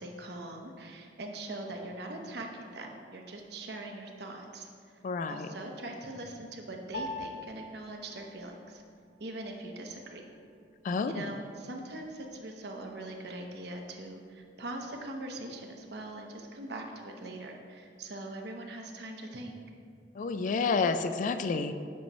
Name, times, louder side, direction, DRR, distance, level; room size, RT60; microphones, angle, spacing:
voice 1, 0.0-5.0 5.3-8.8 9.2-10.3 11.0-19.5, right 2 dB, 65° right, 2 dB, 0.8 m, -42 dB
voice 2, 5.0-5.5 10.8-11.3 20.2-21.7, left 4 dB, 45° left, 9 dB, 0.3 m, -29 dB
Piano, 6.9-16.6, left 2 dB, 80° left, 0.9 m, -48 dB
8.4 x 3.0 x 5.4 m, 2.2 s
head